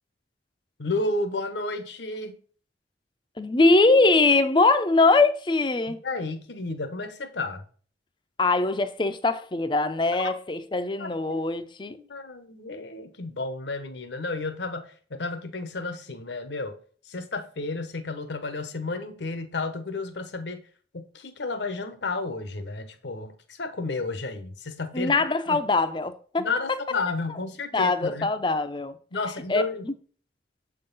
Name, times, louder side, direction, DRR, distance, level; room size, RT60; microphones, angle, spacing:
voice 1, 0.8-2.4 5.9-7.6 10.2-10.4 11.0-11.4 12.0-16.8 17.0-20.6 20.9-25.1 25.5-25.6 26.4-28.3 29.1-29.9, left 3 dB, 75° left, 0.9 m, -32 dB
voice 2, 3.4-6.0 8.4-12.0 24.9-26.5 27.7-28.9 29.5-29.9, left 3 dB, 25° left, 0.5 m, -22 dB
7.5 x 3.8 x 3.9 m
head